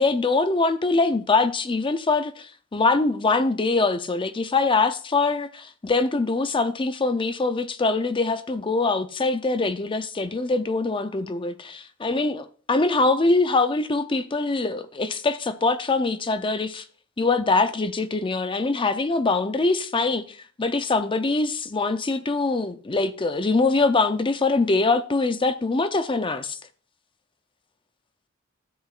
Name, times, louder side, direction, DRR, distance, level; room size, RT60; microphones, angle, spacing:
voice 1, 0.0-16.8 17.2-26.6, left 3 dB, 25° left, 0.5 m, -23 dB
13.0 x 8.0 x 2.4 m
head